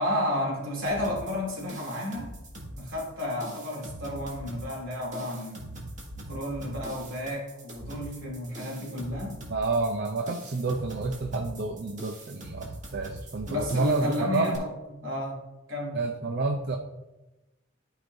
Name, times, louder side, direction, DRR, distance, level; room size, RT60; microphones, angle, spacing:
voice 1, 0.0-2.3 2.7-5.8 6.3-9.4 13.5-15.4 15.7-16.2, left 1 dB, 70° right, -3 dB, 2.8 m, -32 dB
sound 1, 0.8-14.6, right 1 dB, 40° right, 1.7 m, -43 dB
voice 2, 9.5-14.5 15.9-16.8, right 3 dB, 55° right, 4 dB, 0.6 m, -29 dB
12.5 x 4.9 x 2.6 m, 1.0 s
head